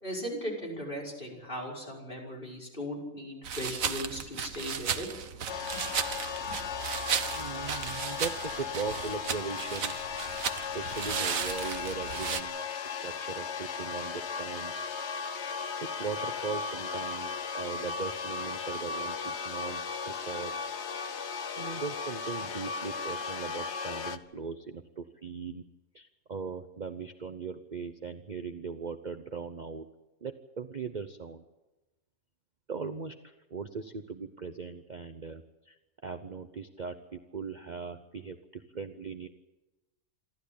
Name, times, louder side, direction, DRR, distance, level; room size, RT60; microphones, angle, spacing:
voice 1, 0.0-5.1 5.7-5.8, equal, 35° left, -2 dB, 5.6 m, -38 dB
sound 1, 3.4-12.4, right 7 dB, 70° right, 1.5 m, -35 dB
sound 2, 5.5-24.2, left 6 dB, 55° left, 1.1 m, -36 dB
voice 2, 7.3-10.0 10.7-14.9 15.8-20.5 21.6-25.6 25.9-29.9 30.2-31.4 32.7-35.8 36.0-39.3, right 5 dB, 35° right, 8 dB, 0.9 m, -39 dB
27.5 x 13.0 x 8.7 m, 1.0 s
omnidirectional pair, 1.5 m